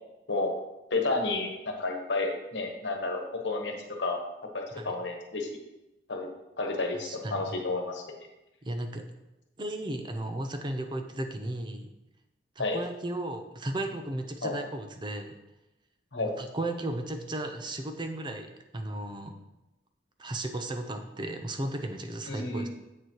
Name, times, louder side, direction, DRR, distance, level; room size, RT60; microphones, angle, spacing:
voice 1, 0.9-4.2 4.5-5.5 6.1-6.3 6.6-8.0 12.6-12.8 14.4-14.6 16.1-16.3 22.3-22.7, left 3 dB, 85° left, 2 dB, 1.2 m, -31 dB
voice 2, 7.0-7.5 8.6-9.0 9.6-11.9 12.6-15.3 16.2-19.4 20.2-22.7, right 1 dB, 25° right, 6 dB, 0.6 m, -35 dB
7.9 x 6.8 x 3.1 m, 0.98 s
head